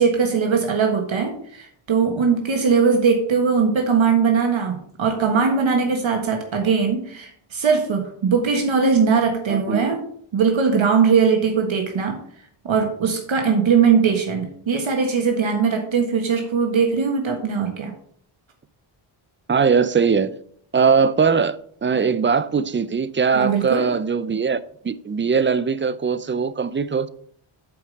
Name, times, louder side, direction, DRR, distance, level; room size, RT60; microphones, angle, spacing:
voice 1, 0.0-10.0 10.3-12.2 12.6-17.9 23.3-23.9, right 5 dB, 65° right, 1.6 m, -20 dB
voice 2, 9.5-9.9 19.5-20.3 20.7-24.6 24.8-27.1, right 5 dB, 25° right, 0.4 m, -20 dB
7.8 x 5.0 x 6.5 m
wide cardioid pair, 110°, 49 cm